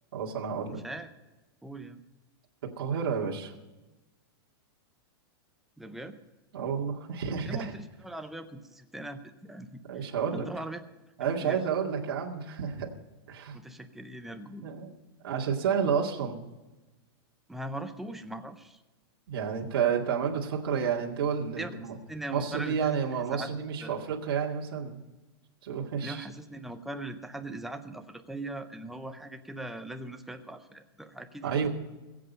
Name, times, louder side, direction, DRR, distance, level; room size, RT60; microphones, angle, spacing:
voice 1, 0.1-0.8 2.8-3.5 6.5-7.7 9.9-10.5 11.2-12.9 13.3-13.6 14.6-14.9 15.2-16.5 19.3-21.9 22.3-25.0 25.6-26.2 31.4-31.7, right 7 dB, 60° right, -2 dB, 2.2 m, -30 dB
voice 2, 0.7-1.1 1.6-2.0 5.8-6.2 7.4-10.8 11.4-11.6 13.5-14.7 17.5-18.8 21.6-23.0 23.3-23.5 23.8-24.0 26.0-31.7, right 1 dB, ahead, 7 dB, 0.5 m, -40 dB
21.5 x 7.9 x 5.5 m, 1.1 s
supercardioid pair, 175°, 13 cm